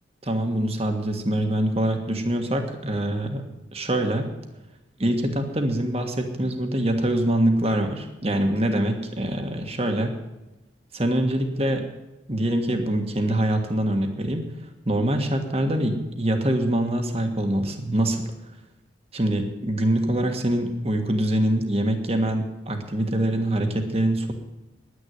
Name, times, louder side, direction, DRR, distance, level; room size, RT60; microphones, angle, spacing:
voice 1, 0.2-3.4 3.7-4.3 5.0-10.1 10.9-11.8 12.3-14.4 14.8-18.2 19.1-24.3, right 1 dB, 35° right, 5 dB, 1.6 m, -24 dB
10.5 x 9.7 x 9.3 m, 0.99 s
head